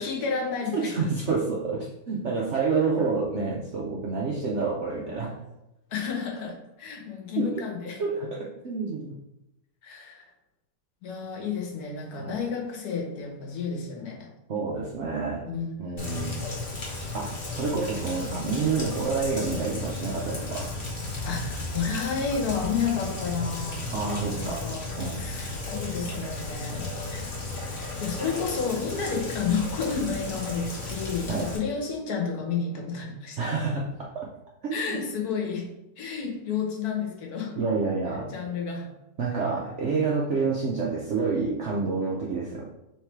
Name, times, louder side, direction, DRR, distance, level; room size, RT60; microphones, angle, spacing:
voice 1, 0.0-1.1 5.9-8.0 9.8-10.3 11.0-14.3 15.5-15.7 21.2-23.8 24.4-24.8 25.1-27.3 27.5-33.4 34.7-37.6 38.3-38.9, left 5 dB, 60° left, 1 dB, 1.3 m, -31 dB
voice 2, 0.7-5.4 7.4-7.6 8.0-9.1 12.1-12.4 14.5-15.4 15.8-16.4 17.1-20.7 23.9-24.7 25.0-25.3 31.3-31.5 33.4-34.2 34.6-35.0 37.6-38.3 39.2-42.6, right 4 dB, 70° right, -2 dB, 0.6 m, -28 dB
Rain, 16.0-31.6, left 2 dB, 40° left, 0.9 m, -34 dB
3.4 x 3.2 x 4.4 m, 0.91 s
omnidirectional pair, 1.9 m